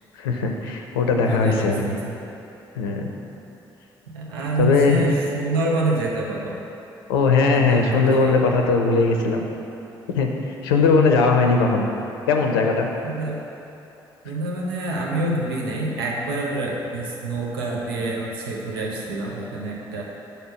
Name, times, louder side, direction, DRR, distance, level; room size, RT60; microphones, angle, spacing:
voice 1, 0.1-2.0 2.8-3.1 4.6-5.0 7.1-9.5 10.1-11.9 12.3-12.9, left 4 dB, 80° left, 2 dB, 0.5 m, -19 dB
voice 2, 1.2-1.7 2.0-2.2 4.1-6.6 7.5-8.4 13.0-13.4 14.2-20.0, right 2 dB, 80° right, -2 dB, 0.7 m, -27 dB
6.6 x 4.3 x 6.2 m, 3.0 s
figure-of-eight pair, 45°, 12 cm